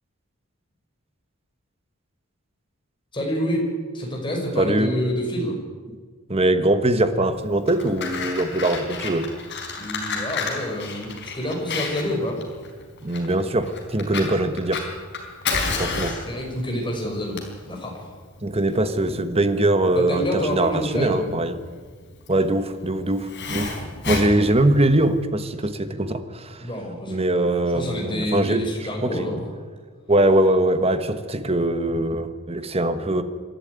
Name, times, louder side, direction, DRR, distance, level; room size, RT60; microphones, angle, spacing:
voice 1, 3.1-3.6 3.9-5.6 9.7-12.4 16.1-17.4 17.7-18.1 20.0-21.2 26.6-27.3 27.7-29.4, equal, 20° left, 0 dB, 5.5 m, -27 dB
voice 2, 4.6-4.9 6.3-9.3 13.0-14.8 15.8-16.1 18.4-21.6 22.3-26.7 27.1-28.6 29.0-29.3 30.1-33.2, right 1 dB, 30° right, 10 dB, 1.3 m, -22 dB
Fire, 7.5-25.2, left 4 dB, 55° left, 4.4 m, -31 dB
26.0 x 11.5 x 9.5 m, 1.5 s
head